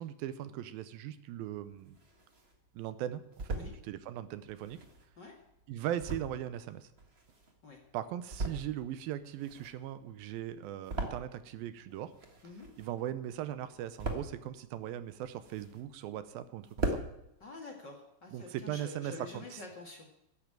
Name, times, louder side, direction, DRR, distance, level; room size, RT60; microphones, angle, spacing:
voice 1, 0.0-2.0 2.7-3.6 3.8-4.8 5.7-6.9 7.9-12.1 12.8-17.0 18.3-19.6, right 11 dB, 80° right, 13 dB, 2.6 m, -39 dB
sound 1, 1.6-2.5 3.0-3.7 4.4-7.7 8.1-8.9 9.2-11.6 11.9-13.1 13.5-14.5 15.0-16.0 16.4-16.5 16.6-17.1, right 2 dB, 45° right, 0.8 m, -39 dB
voice 2, 17.4-20.2, left 3 dB, 40° left, 0 dB, 2.0 m, -47 dB
13.0 x 8.5 x 9.0 m, 0.85 s
omnidirectional pair, 4.2 m